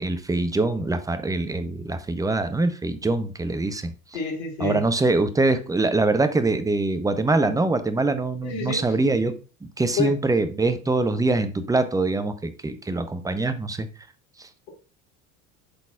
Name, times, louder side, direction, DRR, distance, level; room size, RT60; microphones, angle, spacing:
voice 1, 0.0-3.9 4.6-13.9, right 2 dB, 10° right, 0.6 m, -24 dB
voice 2, 4.1-4.8 8.4-8.8 10.0-10.1, left 5 dB, 75° left, 3.6 m, -27 dB
11.5 x 4.0 x 2.3 m
hypercardioid pair, 70°, 45 cm